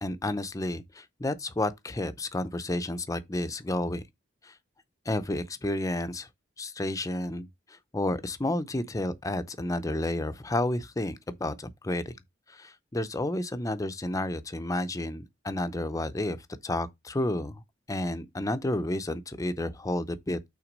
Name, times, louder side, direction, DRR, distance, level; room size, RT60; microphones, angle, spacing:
voice 1, 0.0-4.0 4.4-4.5 5.1-6.3 6.6-12.2 12.5-17.6 17.9-20.4, left 1 dB, 20° left, 0.5 m, -31 dB
5.9 x 3.8 x 5.2 m
head